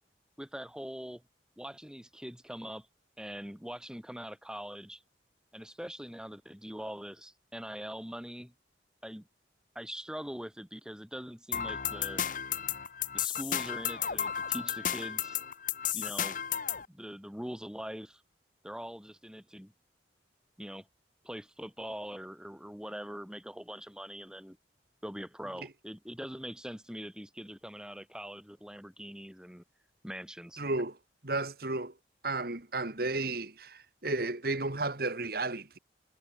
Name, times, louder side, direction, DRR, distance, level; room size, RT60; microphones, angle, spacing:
voice 1, 0.4-1.2 1.6-2.9 3.2-5.0 5.5-8.5 9.0-9.3 9.7-12.2 13.1-15.4 15.9-16.4 16.9-18.2 18.6-19.7 20.6-20.9 21.2-24.6 25.0-29.6 30.0-30.6, equal, 5° right, 2.6 m, -42 dB
sound 1, 11.5-16.8, left 9 dB, 45° left, 1.1 m, -33 dB
voice 2, 30.6-31.0 31.2-31.9 32.2-35.8, right 2 dB, 55° right, 1.9 m, -33 dB
head